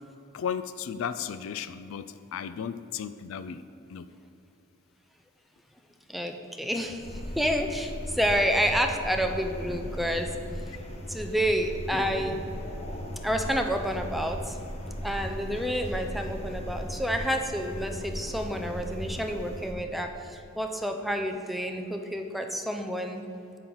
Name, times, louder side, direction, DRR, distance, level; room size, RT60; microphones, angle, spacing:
voice 1, 0.3-3.6 3.9-4.1, left 7 dB, 75° left, 12 dB, 0.4 m, -35 dB
voice 2, 6.1-10.3 11.1-12.4 13.2-14.6 15.0-23.2, equal, ahead, 4 dB, 0.6 m, -29 dB
sound 1, 7.0-19.7, equal, 30° left, 1.0 m, -37 dB
10.5 x 7.7 x 4.0 m, 2.9 s
head